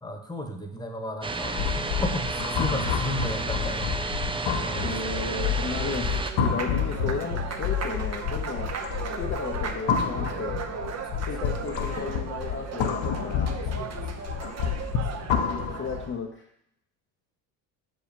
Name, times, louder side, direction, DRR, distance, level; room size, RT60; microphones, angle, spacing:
voice 1, 0.0-4.1 4.6-5.2 11.0-11.3 13.7-14.3, equal, 10° left, 4 dB, 1.3 m, -34 dB
sound 1, 1.2-6.3, right 3 dB, 10° right, 0.4 m, -31 dB
sound 2, 1.4-16.1, left 8 dB, 65° left, 1.1 m, -29 dB
Applause, 4.3-16.2, right 5 dB, 35° right, 1.0 m, -36 dB
voice 2, 4.8-8.7 9.1-10.6 11.2-13.7 15.5-16.5, left 5 dB, 25° left, 1 dB, 0.8 m, -34 dB
6.6 x 5.2 x 5.3 m, 0.76 s
supercardioid pair, 75°, 46 cm